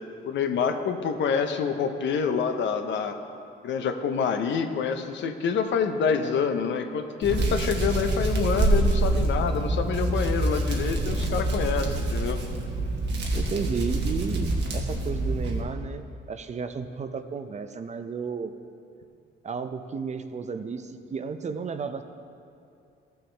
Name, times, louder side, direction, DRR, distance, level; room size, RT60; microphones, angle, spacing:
voice 1, 0.2-3.2 3.6-12.4, left 6 dB, 70° left, 7 dB, 0.7 m, -27 dB
Hands, 7.2-15.6, right 2 dB, 60° right, 1.3 m, -26 dB
voice 2, 13.3-18.5 19.4-22.0, right 5 dB, 35° right, 9 dB, 0.5 m, -33 dB
14.0 x 6.4 x 3.3 m, 2.5 s
cardioid pair, 90°, 20 cm